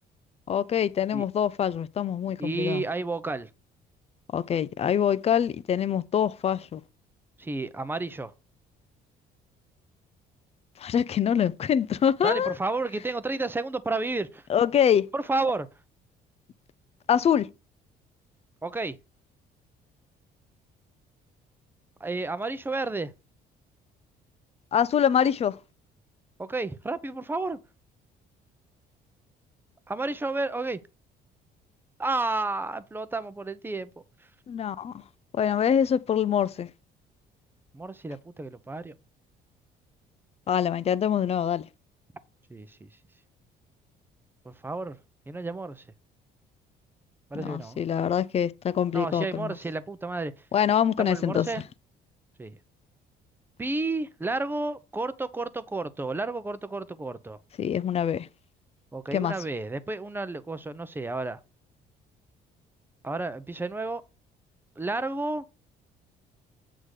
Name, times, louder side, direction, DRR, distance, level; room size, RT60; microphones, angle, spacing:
voice 1, 0.5-2.8 4.3-6.8 10.8-12.6 14.5-15.1 17.1-17.5 24.7-25.6 34.5-35.0 35.3-36.7 40.5-41.7 47.3-49.5 50.5-51.5 57.6-58.3 59.1-59.3, left 8 dB, 40° left, 0.5 m, -25 dB
voice 2, 2.4-3.5 7.4-8.3 12.2-14.4 15.1-15.7 18.6-19.0 22.0-23.1 26.4-27.6 29.9-30.8 32.0-33.9 37.7-38.9 42.5-42.9 44.4-45.0 45.3-45.8 47.3-47.8 48.9-50.3 51.0-51.6 52.4-52.6 53.6-57.4 58.9-61.4 63.0-64.0 64.8-65.4, right 3 dB, 10° right, 0.7 m, -31 dB
8.1 x 3.7 x 6.4 m
cardioid pair, 110°, 17 cm